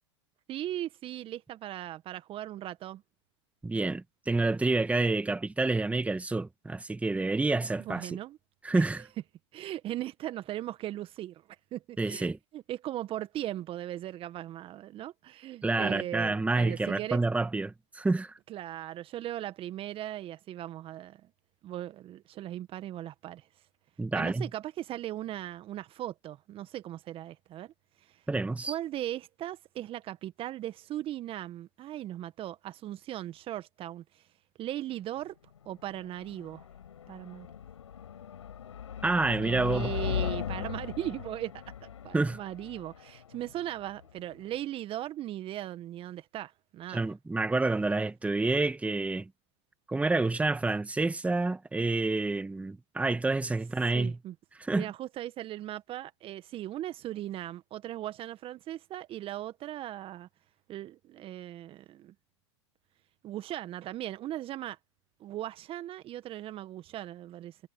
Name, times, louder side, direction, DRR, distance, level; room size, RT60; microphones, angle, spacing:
voice 1, 0.5-3.0 7.8-8.4 8.7-8.9 9.5-11.4 11.7-17.2 18.5-21.3 21.6-23.5 24.1-27.7 28.0-28.2 28.7-34.3 34.6-35.4 35.7-36.7 37.1-37.5 39.4-47.1 53.9-54.3 54.7-60.3 60.7-62.1 63.2-64.8 65.2-67.6, right 13 dB, 35° right, 1.8 m, -38 dB
voice 2, 3.6-8.1 8.6-9.1 12.0-12.4 15.6-18.3 24.0-24.5 28.3-28.7 39.0-39.9 42.1-42.4 46.9-49.3 49.9-54.2 54.6-54.9, right 3 dB, 10° right, 2.1 m, -28 dB
sound 1, 35.6-44.6, left 9 dB, 80° left, 6.1 m, -39 dB
hypercardioid pair, 95°, 15 cm